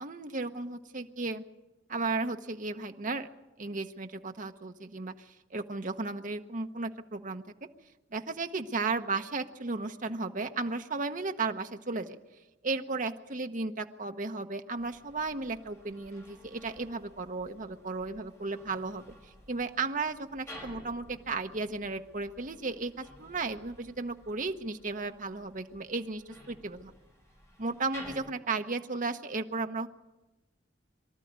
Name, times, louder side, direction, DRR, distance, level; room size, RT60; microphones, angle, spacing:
voice 1, 0.0-1.4 1.9-3.3 3.6-7.4 8.1-12.2 12.6-26.9 27.6-29.9, right 3 dB, 45° right, 7 dB, 1.0 m, -34 dB
sound 1, 14.8-28.2, left 1 dB, 15° left, 4.9 m, -53 dB
23.5 x 13.0 x 9.5 m, 1.1 s
head